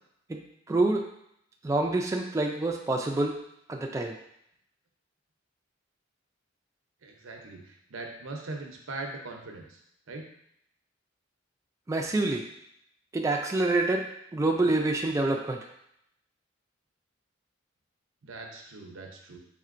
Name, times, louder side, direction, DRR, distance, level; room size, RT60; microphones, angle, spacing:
voice 1, 0.7-1.0 1.6-3.4 3.7-4.1 11.9-12.4 13.1-14.0 14.3-15.6, right 2 dB, 15° right, 2 dB, 0.3 m, -26 dB
voice 2, 7.0-9.8 10.1-10.3 18.2-19.4, right 2 dB, 90° right, 2 dB, 0.7 m, -40 dB
4.3 x 3.5 x 2.5 m, 0.75 s
head